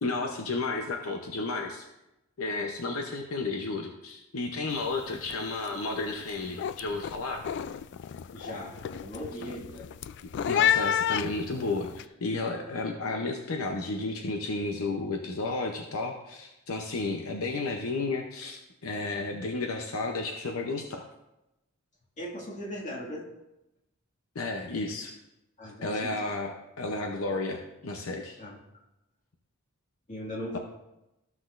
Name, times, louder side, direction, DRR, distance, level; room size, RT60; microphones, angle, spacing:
voice 1, 0.0-1.8 2.4-7.4 10.5-21.0 24.3-25.1 25.8-28.4, left 3 dB, 75° left, 3 dB, 0.7 m, -32 dB
sound 1, 4.7-5.0 5.2-5.7 6.1-12.0, left 9 dB, 55° left, 0.3 m, -31 dB
voice 2, 8.3-9.9 22.2-23.3 25.6-26.2 28.4-28.6 30.1-30.6, equal, 35° left, -3 dB, 2.0 m, -38 dB
14.0 x 6.0 x 2.5 m, 0.93 s
head